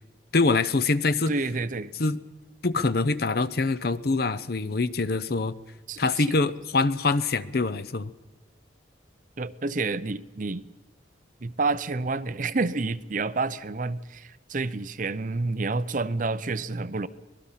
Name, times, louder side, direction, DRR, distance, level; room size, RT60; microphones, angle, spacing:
voice 1, 0.3-1.3 2.0-2.2 2.6-5.5 6.0-8.1, left 3 dB, 50° left, 15 dB, 0.7 m, -24 dB
voice 2, 1.3-1.9 5.9-6.2 9.4-10.7 11.4-17.1, right 3 dB, 45° right, 14 dB, 0.6 m, -29 dB
25.0 x 19.0 x 5.7 m, 1.1 s
head